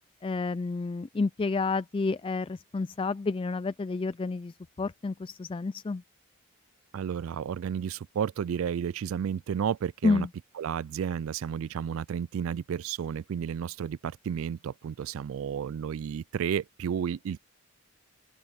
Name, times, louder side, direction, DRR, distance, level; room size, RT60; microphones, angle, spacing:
voice 1, 0.2-4.5 4.8-6.0 10.0-10.3, left 3 dB, 25° left, 0.3 m, -29 dB
voice 2, 6.9-10.3 10.6-17.4, right 8 dB, 65° right, 0.3 m, -32 dB
open air
head